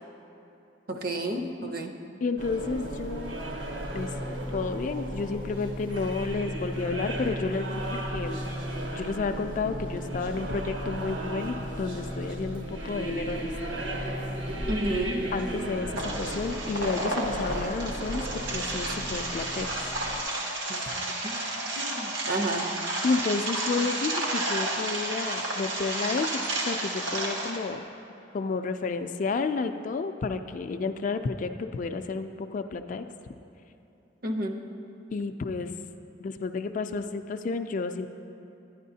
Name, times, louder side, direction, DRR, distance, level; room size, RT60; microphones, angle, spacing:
voice 1, 0.9-1.9 14.7-15.2 20.7-20.8 21.2-21.3 21.8-22.6 34.2-34.6, right 1 dB, 50° right, 4 dB, 0.6 m, -30 dB
voice 2, 2.2-3.4 3.9-4.1 4.5-8.4 8.9-13.4 15.3-19.9 23.0-27.8 28.3-33.0 35.1-35.7 36.2-38.1, left 4 dB, 45° left, 8 dB, 0.3 m, -31 dB
sound 1, 2.4-20.2, right 1 dB, 70° right, 1.0 m, -35 dB
sound 2, 16.0-27.6, right 1 dB, 85° right, 1.2 m, -31 dB
11.0 x 10.0 x 2.7 m, 3.0 s
head